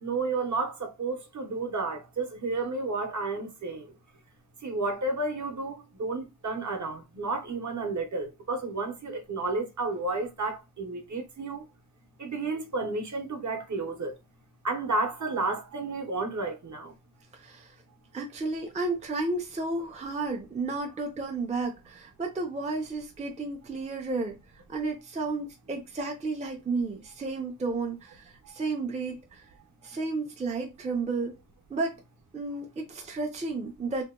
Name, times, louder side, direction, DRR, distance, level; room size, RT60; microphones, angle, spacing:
voice 1, 0.0-3.9 4.6-11.6 12.2-14.2 14.6-17.0 28.4-28.5, right 3 dB, 50° right, 0.8 m, -32 dB
voice 2, 17.3-17.8 18.1-24.4 24.7-29.5 29.8-31.4 31.7-32.0 32.3-34.0, right 3 dB, 20° right, 0.4 m, -32 dB
2.8 x 2.1 x 3.6 m
wide cardioid pair, 175°, 37 cm